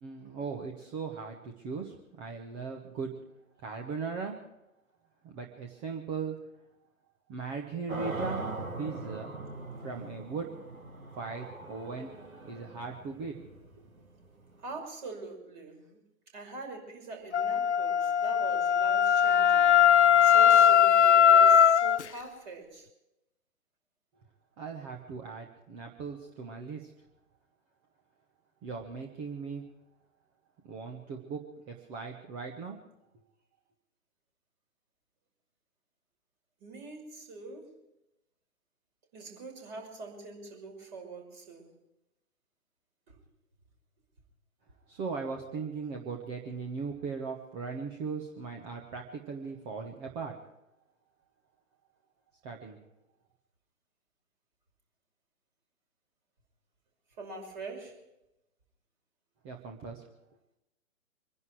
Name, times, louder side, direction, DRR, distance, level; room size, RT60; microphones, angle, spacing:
voice 1, 0.0-3.1 3.6-4.4 5.2-6.4 7.3-8.5 8.8-9.3 9.8-10.5 11.2-12.1 12.4-13.4 13.7-13.8 24.6-26.9 28.6-29.6 30.6-32.8 44.9-50.3 52.4-52.8 59.4-60.1, right 5 dB, 10° right, 2 dB, 0.7 m, -38 dB
sound 1, 7.9-14.8, right 2 dB, 80° right, 2.1 m, -41 dB
voice 2, 14.6-16.0 16.3-19.7 20.2-22.9 36.6-37.8 39.1-41.7 43.1-43.2 57.2-58.0, right 3 dB, 35° right, 2 dB, 5.9 m, -43 dB
Wind instrument woodwind instrument, 17.3-22.0, left 9 dB, 55° left, 0.5 m, -20 dB
25.5 x 11.0 x 4.6 m, 0.89 s
figure-of-eight pair, 130°, 41 cm